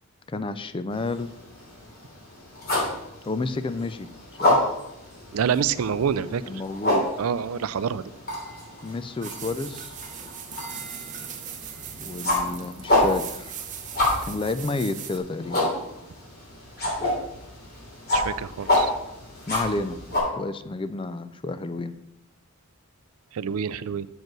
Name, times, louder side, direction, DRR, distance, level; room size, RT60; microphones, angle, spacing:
voice 1, 0.3-1.3 3.3-4.1 4.4-4.6 6.5-7.0 8.8-9.9 12.0-13.7 14.3-15.8 19.5-20.0 20.3-21.9, left 3 dB, 25° left, 13 dB, 0.4 m, -30 dB
sound 1, 0.9-20.2, left 1 dB, 50° left, 3.2 m, -29 dB
voice 2, 5.3-6.4 7.2-8.1 18.1-18.9 23.3-24.1, right 7 dB, 80° right, 16 dB, 0.4 m, -27 dB
sound 2, 9.2-15.2, right 8 dB, 35° right, 0.8 m, -39 dB
7.4 x 5.3 x 6.0 m, 0.86 s
head